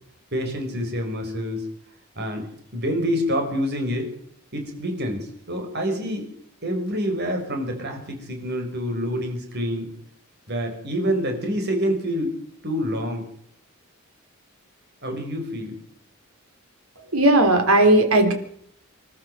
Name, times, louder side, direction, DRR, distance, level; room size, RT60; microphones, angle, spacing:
voice 1, 0.3-1.7 2.2-4.1 4.5-6.3 6.6-9.9 10.5-12.3 12.6-13.3 15.0-15.8, equal, 50° right, 4 dB, 5.5 m, -27 dB
voice 2, 17.1-18.3, right 1 dB, 80° right, 5 dB, 4.0 m, -16 dB
25.5 x 13.0 x 7.8 m, 0.66 s
head